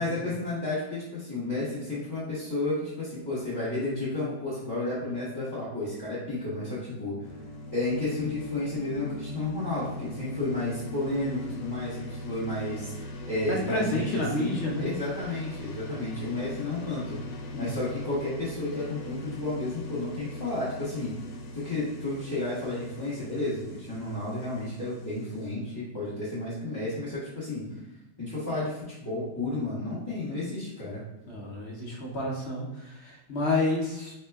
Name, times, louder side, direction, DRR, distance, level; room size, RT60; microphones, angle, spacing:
voice 1, 0.0-7.2 7.7-17.2 17.6-21.1 21.5-27.6 28.2-31.0, left 2 dB, 20° left, -10 dB, 0.7 m, -32 dB
sound 1, 7.2-25.5, left 1 dB, 85° left, 1.2 m, -41 dB
voice 2, 13.5-14.9 17.5-17.7 31.3-34.1, left 2 dB, 55° left, -3 dB, 0.8 m, -30 dB
4.2 x 2.1 x 3.3 m, 0.97 s
omnidirectional pair, 1.8 m